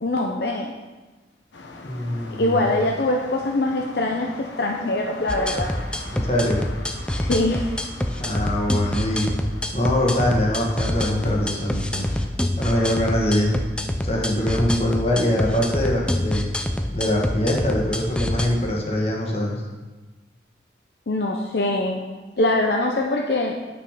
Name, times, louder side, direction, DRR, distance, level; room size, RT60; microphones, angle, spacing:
voice 1, 0.0-0.7 2.4-5.7 7.1-7.8 21.1-22.0 22.4-23.5, left 2 dB, 65° left, 1 dB, 0.7 m, -23 dB
sound 1, 1.5-12.3, left 2 dB, 90° left, 1.1 m, -41 dB
voice 2, 1.8-2.6 6.1-6.6 8.2-9.3 9.7-12.0 12.6-13.6 14.0-16.5 16.9-19.6, left 1 dB, 35° left, -1 dB, 1.5 m, -23 dB
sound 2, 5.3-18.5, left 1 dB, 5° left, 0.4 m, -26 dB
8.2 x 6.8 x 5.0 m, 1.3 s
head